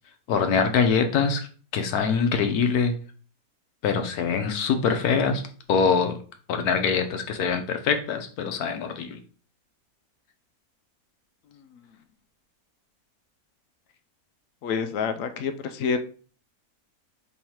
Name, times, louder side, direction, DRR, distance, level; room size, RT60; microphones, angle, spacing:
voice 1, 0.3-1.5 1.7-3.0 3.8-5.4 5.7-6.2 6.5-9.2, left 6 dB, 85° left, 6 dB, 1.2 m, -23 dB
voice 2, 11.5-11.9 14.6-16.0, left 6 dB, 70° left, 9 dB, 0.9 m, -28 dB
3.5 x 3.1 x 4.3 m, 0.41 s
omnidirectional pair, 1.6 m